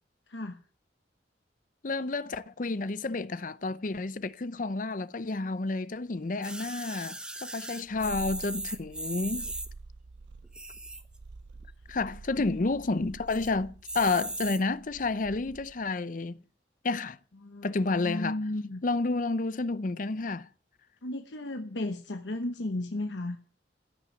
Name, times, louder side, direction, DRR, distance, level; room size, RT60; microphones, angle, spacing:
voice 1, 0.3-0.6 8.0-8.4 12.4-12.7 17.4-18.8 21.0-23.4, left 1 dB, 85° left, 1.1 m, -35 dB
voice 2, 1.8-9.5 11.9-16.4 16.8-17.2 17.6-18.4 18.8-20.5, left 3 dB, 45° left, 0.6 m, -30 dB
sound 1, 6.4-9.7 10.4-11.2 11.6-11.7 11.9-12.0 12.4-12.8 13.3-13.5 13.8-14.6 15.3-15.4, right 2 dB, 5° right, 0.9 m, -38 dB
Purr, 7.8-15.9, right 3 dB, 85° right, 0.5 m, -48 dB
15.5 x 6.1 x 9.2 m
head